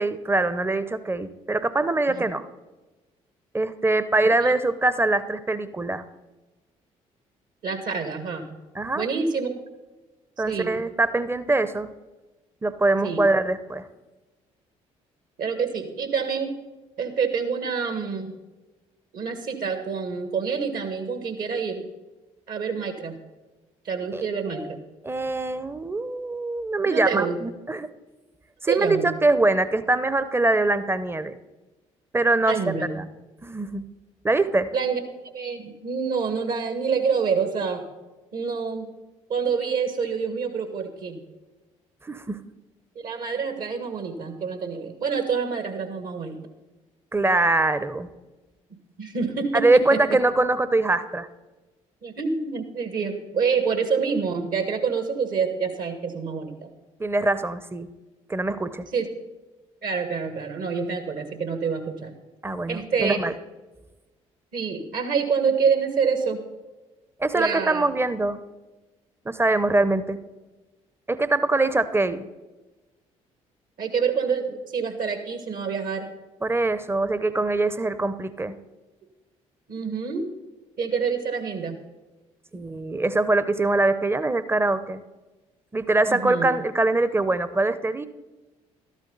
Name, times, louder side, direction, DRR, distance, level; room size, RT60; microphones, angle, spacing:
voice 1, 0.0-2.4 3.5-6.0 8.7-9.1 10.4-11.9 12.6-13.8 24.1-24.2 24.5-24.7 25.0-27.9 28.6-31.3 32.1-33.1 33.4-33.8 34.2-34.7 42.0-42.4 47.1-48.1 49.5-51.3 57.0-57.9 58.3-58.8 62.4-63.3 67.2-68.4 69.3-70.2 71.1-72.3 76.4-78.6 82.5-85.0 85.7-88.1, right 2 dB, 15° right, 14 dB, 0.8 m, -23 dB
voice 2, 7.6-8.5 8.9-9.5 10.5-10.7 13.0-13.2 15.4-16.5 17.0-18.4 19.1-21.8 22.5-23.2 23.8-24.8 26.8-27.4 28.7-29.1 32.5-32.9 34.7-35.0 35.3-37.8 38.3-38.9 39.3-41.2 43.0-46.4 49.0-50.0 52.0-56.7 58.9-59.1 59.8-62.1 62.7-63.2 64.5-66.4 67.3-67.9 73.8-76.1 79.7-80.3 80.8-81.8 86.1-86.5, right 5 dB, 60° right, 8 dB, 1.7 m, -27 dB
13.0 x 11.5 x 4.0 m, 1.1 s
hypercardioid pair, 50°, 17 cm